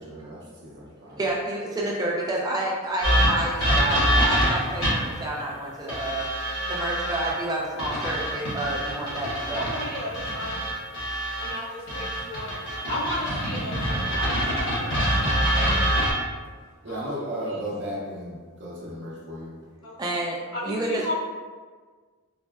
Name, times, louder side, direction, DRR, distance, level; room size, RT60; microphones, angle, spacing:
voice 1, 0.0-1.2 16.8-19.5, equal, 50° right, -5 dB, 0.7 m, -35 dB
voice 2, 1.1-6.3 6.7-9.6 20.0-20.4 20.6-21.1, right 1 dB, 20° right, -3 dB, 0.4 m, -29 dB
sound 1, 3.0-5.2 5.9-7.3 7.8-11.5 11.9-16.1, equal, 55° left, 1.1 m, -25 dB
voice 3, 9.5-10.7 11.4-15.2 16.9-17.6 19.8-19.9 20.5-21.1, left 1 dB, 85° left, -7 dB, 1.0 m, -35 dB
4.0 x 2.1 x 2.3 m, 1.5 s
head